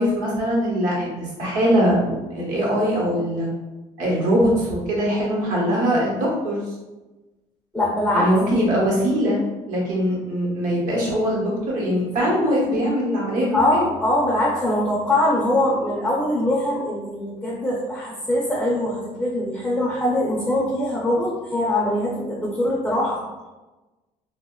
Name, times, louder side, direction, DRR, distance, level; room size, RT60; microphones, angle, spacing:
voice 1, 0.0-3.5 4.0-6.6 8.1-9.4 9.7-13.9, equal, 70° right, -4 dB, 0.9 m, -22 dB
voice 2, 7.7-8.3 13.5-23.2, left 1 dB, 5° left, -5 dB, 0.4 m, -22 dB
2.8 x 2.1 x 2.2 m, 1.1 s
cardioid pair, 155°, 14 cm